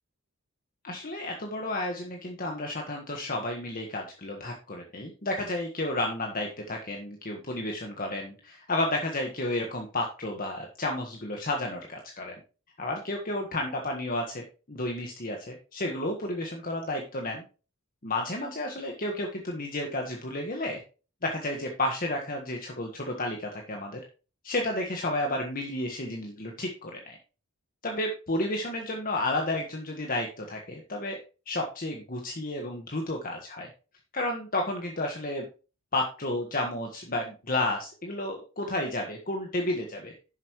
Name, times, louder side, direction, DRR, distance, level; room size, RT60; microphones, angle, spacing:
voice 1, 0.8-12.4 12.8-17.4 18.0-20.8 21.2-24.0 24.4-27.2 27.8-31.2 31.5-33.7 34.1-35.4 35.9-40.1, left 1 dB, 40° left, 2 dB, 1.5 m, -32 dB
11.0 x 7.4 x 3.1 m, 0.33 s
head